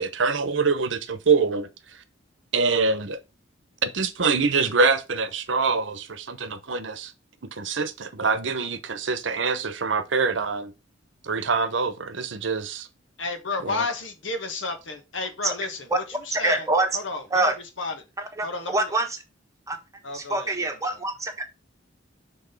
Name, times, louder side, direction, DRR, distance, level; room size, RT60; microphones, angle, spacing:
voice 1, 0.0-1.7 2.5-3.2 3.8-7.1 7.5-10.7 11.2-12.9 13.6-13.9, right 4 dB, 75° right, 0.9 m, -25 dB
voice 2, 13.2-15.8 16.3-16.7 16.9-17.4 17.8-17.9 18.4-18.9 20.0-20.7, left 3 dB, 75° left, 1.6 m, -31 dB
voice 3, 16.3-16.9 17.3-17.5 18.2-19.2 19.7-19.8 20.1-21.4, right 2 dB, 15° right, 1.2 m, -25 dB
6.1 x 3.8 x 5.3 m
head